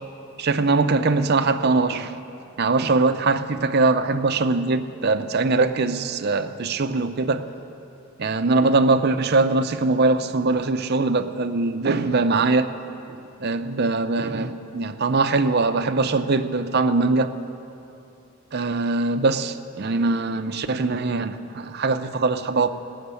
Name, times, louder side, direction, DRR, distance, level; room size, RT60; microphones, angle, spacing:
voice 1, 0.4-2.1 2.6-7.5 8.2-12.7 13.1-17.3 18.5-22.7, right 3 dB, 50° right, 9 dB, 0.6 m, -22 dB
17.5 x 6.5 x 8.2 m, 2.8 s
head